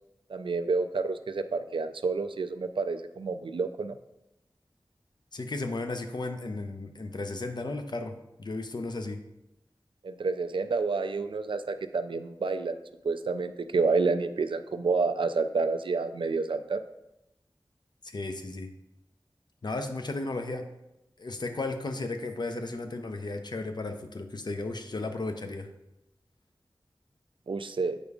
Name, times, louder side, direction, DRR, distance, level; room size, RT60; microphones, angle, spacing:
voice 1, 0.3-4.0 10.0-12.8 13.0-16.8 27.5-28.0, right 4 dB, 85° right, 10 dB, 0.3 m, -29 dB
voice 2, 5.3-9.2 18.0-18.7 19.6-20.7 21.2-25.7, left 2 dB, 60° left, 6 dB, 0.6 m, -34 dB
7.9 x 5.0 x 2.4 m, 0.90 s
wide cardioid pair, 50°, 8 cm